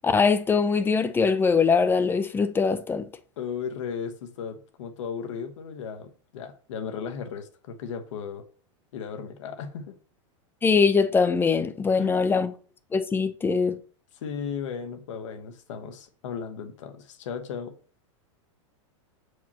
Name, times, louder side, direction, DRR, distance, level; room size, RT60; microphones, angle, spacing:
voice 1, 0.0-3.1 10.6-12.5 12.9-13.8, left 5 dB, 15° left, 0.6 m, -22 dB
voice 2, 3.4-8.4 8.9-9.9 11.9-12.2 14.2-17.7, left 6 dB, 75° left, 1.1 m, -35 dB
7.2 x 4.7 x 2.9 m
hypercardioid pair, 125°, 16 cm